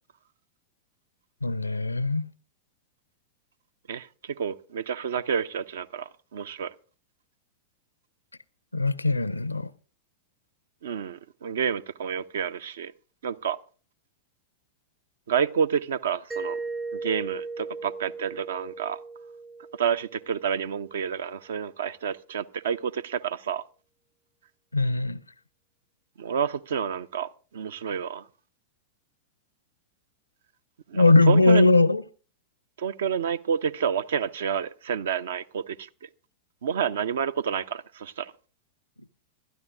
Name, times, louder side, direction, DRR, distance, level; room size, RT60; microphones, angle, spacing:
voice 1, 1.4-2.3 8.7-9.7 24.7-25.2 30.9-32.0, left 3 dB, 85° left, 0.5 m, -20 dB
voice 2, 3.9-6.7 10.8-12.9 13.2-13.6 15.3-16.6 16.9-19.0 19.8-23.6 26.2-28.3 30.9-31.7 32.8-36.1 36.6-38.3, right 7 dB, 60° right, 0.5 m, -29 dB
Mallet percussion, 16.3-20.9, right 3 dB, 15° right, 0.6 m, -37 dB
25.5 x 12.5 x 2.5 m
figure-of-eight pair, 90°, 0 cm